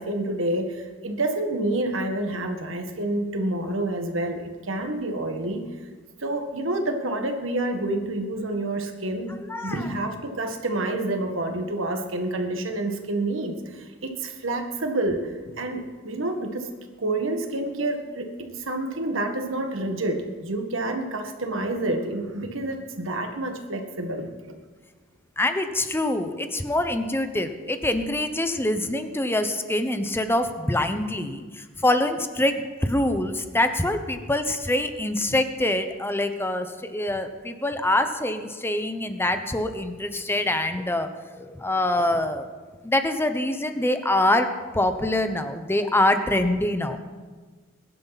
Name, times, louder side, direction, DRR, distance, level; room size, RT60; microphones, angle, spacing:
voice 1, 0.0-5.6 6.2-9.3 9.6-16.7 17.0-24.5, right 2 dB, 85° right, 4 dB, 1.8 m, -28 dB
voice 2, 9.4-9.9 25.4-41.1 41.3-42.5 42.8-47.0, left 1 dB, 10° left, 8 dB, 1.0 m, -25 dB
21.5 x 11.0 x 4.2 m, 1.4 s
head